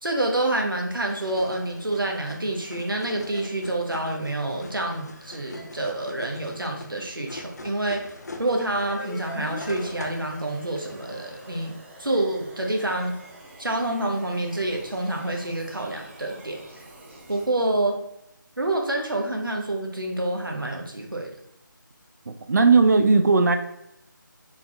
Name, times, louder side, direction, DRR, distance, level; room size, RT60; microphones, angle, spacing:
voice 1, 0.0-8.0 8.4-11.7 12.0-13.2 13.6-16.6 17.3-18.0 18.6-21.3, right 2 dB, 90° right, 2 dB, 1.1 m, -27 dB
sound 1, 1.0-11.7, left 2 dB, 55° left, 0.6 m, -42 dB
sound 2, 9.0-17.5, right 2 dB, 35° right, 0.8 m, -47 dB
voice 2, 22.3-23.6, right 4 dB, 55° right, 7 dB, 0.4 m, -17 dB
4.3 x 3.9 x 2.5 m, 0.82 s
figure-of-eight pair, 160°, 11 cm